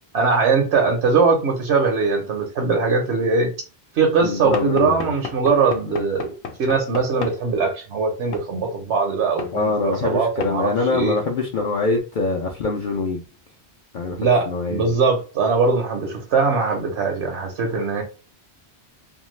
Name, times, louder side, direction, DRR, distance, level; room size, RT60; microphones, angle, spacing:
voice 1, 0.1-3.5 3.9-6.3 6.6-11.2 14.2-18.0, right 4 dB, 85° right, 1 dB, 1.0 m, -21 dB
voice 2, 4.2-5.1 5.9-6.0 9.5-13.2 13.9-14.8, left 3 dB, 60° left, 1 dB, 0.6 m, -24 dB
Knock / Wood, 4.5-7.4 8.3-8.5 9.4-9.6 10.4-10.6, left 6 dB, 90° left, 0.9 m, -33 dB
2.7 x 2.3 x 3.1 m, 0.32 s
omnidirectional pair, 1.1 m